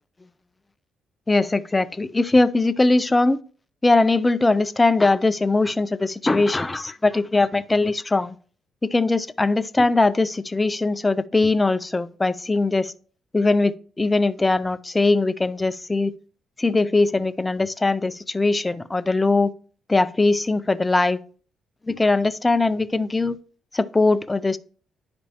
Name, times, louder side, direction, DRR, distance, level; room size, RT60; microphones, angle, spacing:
voice 1, 1.3-3.4 3.8-8.3 8.8-12.9 13.3-16.1 16.6-19.5 19.9-21.2 21.9-23.4 23.7-24.6, left 2 dB, 20° left, 0.4 m, -20 dB
10.0 x 5.2 x 2.8 m
cardioid pair, 90°, 0 cm